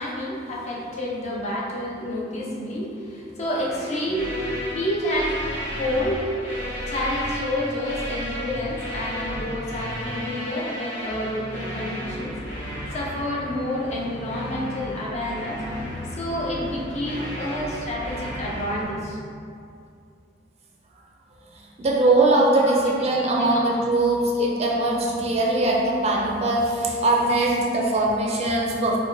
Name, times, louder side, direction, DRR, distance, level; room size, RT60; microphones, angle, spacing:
voice 1, 0.0-5.4 5.7-6.3 6.8-12.4 12.9-15.6 16.1-19.2 22.6-22.8 23.4-23.7 24.2-24.4, left 1 dB, 35° left, -3 dB, 0.5 m, -29 dB
sound 1, 3.7-18.8, equal, 85° left, 0.9 m, -33 dB
voice 2, 21.5-29.0, right 2 dB, 35° right, -2 dB, 0.4 m, -21 dB
4.5 x 2.1 x 2.5 m, 2.4 s
head